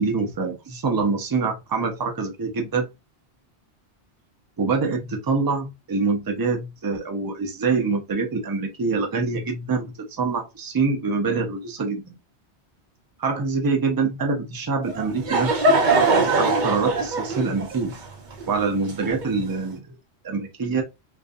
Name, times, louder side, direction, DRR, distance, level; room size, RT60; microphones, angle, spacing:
voice 1, 0.0-2.9 4.6-12.2 13.2-15.8 16.4-17.9 18.5-19.8 20.2-20.8, right 4 dB, 35° right, 0.3 m, -25 dB
Laughter / Crowd, 14.9-19.5, right 3 dB, 50° right, 0.7 m, -22 dB
2.5 x 2.3 x 2.4 m
omnidirectional pair, 1.1 m